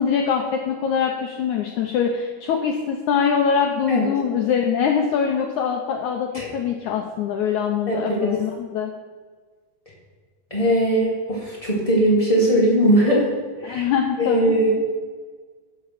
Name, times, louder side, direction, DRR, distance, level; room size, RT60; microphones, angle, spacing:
voice 1, 0.0-8.9 13.6-14.5, left 7 dB, 90° left, 2 dB, 1.7 m, -23 dB
voice 2, 7.9-8.3 10.5-13.2 13.6-13.8 14.2-14.7, right 1 dB, 30° left, -5 dB, 0.6 m, -19 dB
12.5 x 5.8 x 5.9 m, 1.5 s
omnidirectional pair, 4.4 m